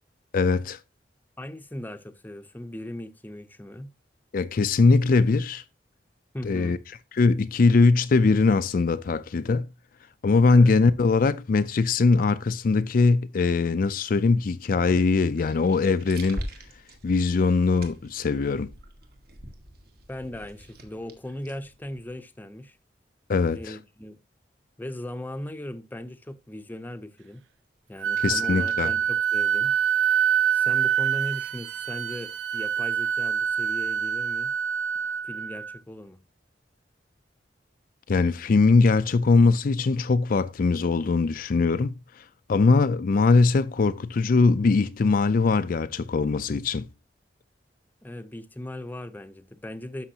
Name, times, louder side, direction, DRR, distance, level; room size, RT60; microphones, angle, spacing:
voice 1, 0.3-0.8 4.3-5.6 6.4-6.8 7.2-9.7 10.2-16.4 17.0-18.7 23.3-23.8 28.2-28.9 38.1-46.9, left 4 dB, 50° left, 0.4 m, -21 dB
voice 2, 1.4-3.9 6.3-6.8 10.5-10.7 20.1-22.8 23.5-24.2 24.8-27.4 27.9-29.8 30.5-34.5 35.2-36.2 48.0-50.1, left 1 dB, 10° left, 0.7 m, -38 dB
sound 1, 14.8-22.2, right 1 dB, 60° right, 1.8 m, -43 dB
Wind instrument woodwind instrument, 28.0-35.8, right 8 dB, 85° right, 0.4 m, -26 dB
11.5 x 6.9 x 2.8 m
head